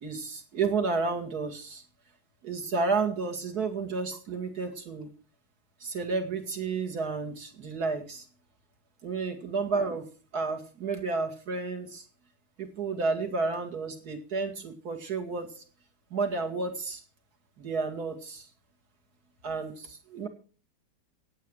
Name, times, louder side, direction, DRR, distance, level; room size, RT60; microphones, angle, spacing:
voice 1, 0.0-1.8 2.4-5.1 5.8-8.2 9.0-10.0 10.3-12.0 12.6-15.5 16.1-17.0 17.6-18.5 19.4-20.3, right 4 dB, 60° right, 4 dB, 2.8 m, -31 dB
16.5 x 8.8 x 6.4 m, 0.39 s
omnidirectional pair, 1.9 m